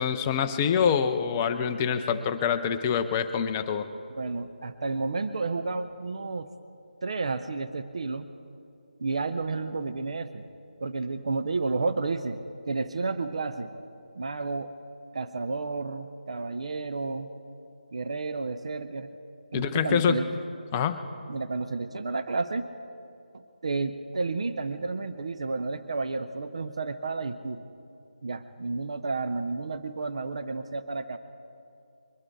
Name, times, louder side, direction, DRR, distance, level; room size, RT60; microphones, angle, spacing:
voice 1, 0.0-3.9 19.5-20.2 20.7-21.0, left 7 dB, 15° left, 8 dB, 0.5 m, -25 dB
voice 2, 4.2-6.5 7.0-8.3 9.0-10.4 10.8-13.7 14.1-14.7 15.1-17.3 17.9-19.1 19.5-20.3 21.3-22.7 23.3-27.6 28.2-31.2, right 3 dB, 45° right, 10 dB, 0.6 m, -31 dB
22.5 x 12.0 x 4.7 m, 2.5 s
figure-of-eight pair, 155°, 5 cm